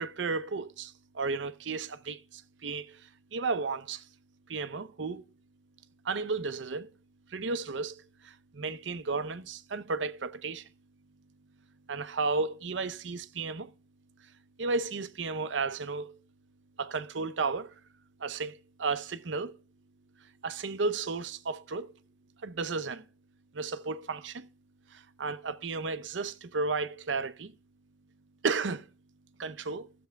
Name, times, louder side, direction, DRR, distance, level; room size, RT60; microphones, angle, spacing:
voice 1, 0.0-3.0 3.3-4.0 4.5-5.2 6.0-6.9 7.3-10.6 11.9-13.7 14.6-16.2 16.8-17.7 18.2-19.6 20.4-21.9 22.4-23.0 23.5-24.5 24.9-27.5 28.4-28.9 29.4-29.9, right 4 dB, 85° right, 0.7 m, -33 dB
15.5 x 6.8 x 3.4 m
head